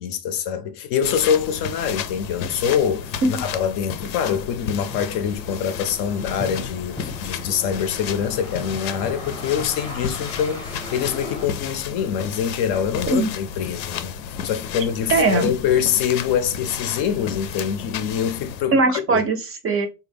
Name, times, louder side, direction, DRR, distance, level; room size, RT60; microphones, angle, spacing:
voice 1, 0.0-18.8 19.1-19.2, left 8 dB, 50° left, 0.6 m, -24 dB
sound 1, 1.0-18.6, left 7 dB, 85° left, 0.7 m, -33 dB
sound 2, 4.9-11.5, left 2 dB, 10° left, 0.7 m, -38 dB
voice 2, 15.1-15.5 18.7-19.9, right 3 dB, 30° right, 0.5 m, -20 dB
3.8 x 2.2 x 3.4 m
supercardioid pair, 105°, 50 cm